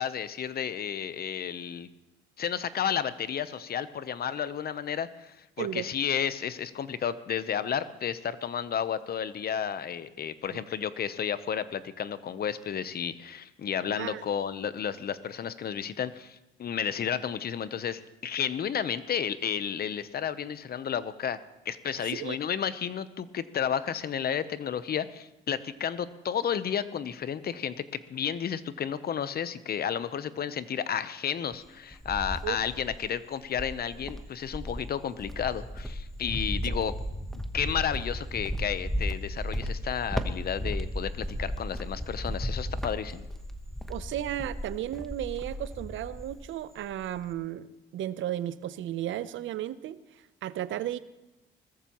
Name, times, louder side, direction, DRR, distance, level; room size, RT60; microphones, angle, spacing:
voice 1, 0.0-1.9 2.4-21.4 21.7-27.8 28.1-36.9 37.5-43.3, left 8 dB, 50° left, 14 dB, 0.8 m, -32 dB
voice 2, 5.6-5.9 10.5-10.6 13.9-14.2 22.0-22.4 32.4-32.6 36.6-36.7 43.9-50.0 50.4-51.0, right 12 dB, 75° right, 15 dB, 0.7 m, -34 dB
Cricket, 31.5-33.1 33.5-46.5 46.8-47.3, equal, ahead, 1.0 m, -35 dB
20.5 x 14.0 x 3.0 m, 0.96 s
cardioid pair, 90°, 20 cm